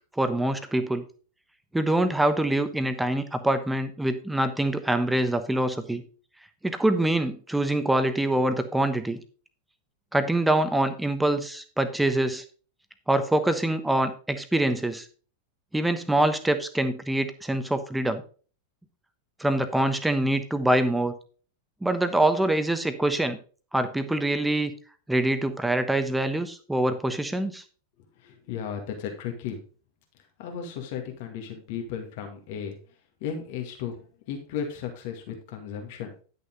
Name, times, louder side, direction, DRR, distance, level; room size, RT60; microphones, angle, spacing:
voice 1, 0.2-1.0 1.7-6.0 6.6-9.2 10.1-12.4 13.1-15.1 15.7-18.2 19.4-21.1 21.8-23.4 23.7-24.7 25.1-27.6, right 1 dB, 5° right, 10 dB, 1.1 m, -25 dB
voice 2, 28.2-29.6 30.4-32.8 33.2-34.0 34.3-36.1, left 7 dB, 50° left, 3 dB, 2.1 m, -35 dB
11.0 x 6.6 x 3.9 m, 0.39 s
figure-of-eight pair, 90°, 0 cm